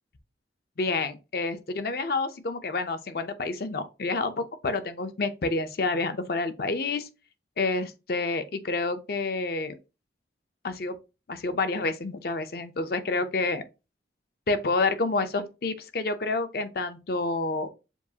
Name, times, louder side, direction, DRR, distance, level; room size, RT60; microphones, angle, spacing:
voice 1, 0.8-7.1 7.6-9.8 10.6-11.0 11.3-13.6 14.5-17.7, left 3 dB, 55° left, 0.5 m, -29 dB
7.0 x 2.4 x 2.8 m
head